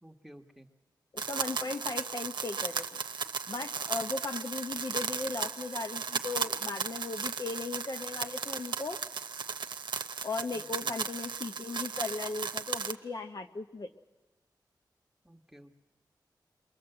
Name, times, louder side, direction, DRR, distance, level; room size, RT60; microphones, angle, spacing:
voice 1, 0.0-0.7 10.5-11.0 15.2-15.7, equal, 5° right, 4 dB, 1.4 m, -54 dB
voice 2, 1.1-3.0 3.5-9.0 10.2-13.9, left 3 dB, 55° left, 6 dB, 0.8 m, -37 dB
sound 1, 1.2-12.9, right 5 dB, 80° right, 0.8 m, -36 dB
28.5 x 23.0 x 7.9 m, 1.2 s
wide cardioid pair, 75°, 8 cm